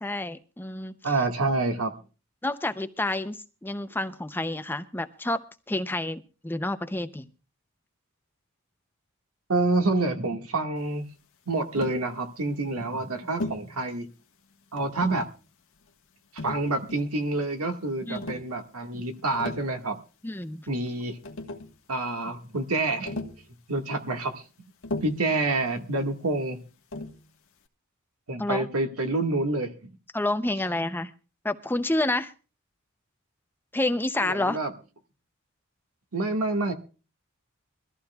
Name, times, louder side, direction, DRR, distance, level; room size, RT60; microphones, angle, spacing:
voice 1, 0.0-1.1 2.4-5.4 5.7-7.3 18.1-18.4 20.2-20.7 28.4-28.7 30.1-31.1 31.4-32.3 33.7-34.6, left 2 dB, 10° left, 0.6 m, -29 dB
voice 2, 1.0-1.9 9.5-11.0 11.5-14.1 14.7-15.3 16.4-20.0 20.7-21.2 21.9-23.1 23.7-24.4 25.0-26.6 28.3-29.9 34.2-34.7 36.1-36.7, right 2 dB, 90° right, 1.8 m, -27 dB
Tap, 11.7-12.1 13.4-13.7 14.8-15.3 16.4-17.1 18.1-18.5 19.2-19.7 20.9-21.0 21.2-21.8 23.1-23.5 24.8-25.3 26.9-27.2, left 2 dB, 65° left, 1.4 m, -36 dB
23.0 x 14.5 x 2.3 m
head